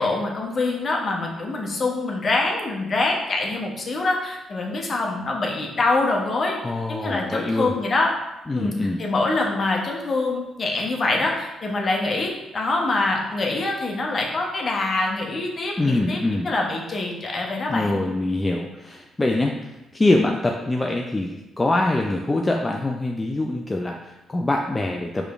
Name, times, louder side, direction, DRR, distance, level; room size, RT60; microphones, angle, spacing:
voice 1, 0.0-6.6 6.9-8.1 8.5-8.7 9.0-18.0, left 2 dB, 45° left, 0 dB, 0.9 m, -25 dB
voice 2, 6.6-7.7 8.5-9.0 15.8-16.5 17.7-19.5 19.9-25.3, left 2 dB, 20° left, 1 dB, 0.4 m, -24 dB
4.7 x 3.2 x 2.4 m, 0.99 s
supercardioid pair, 60°, 0 cm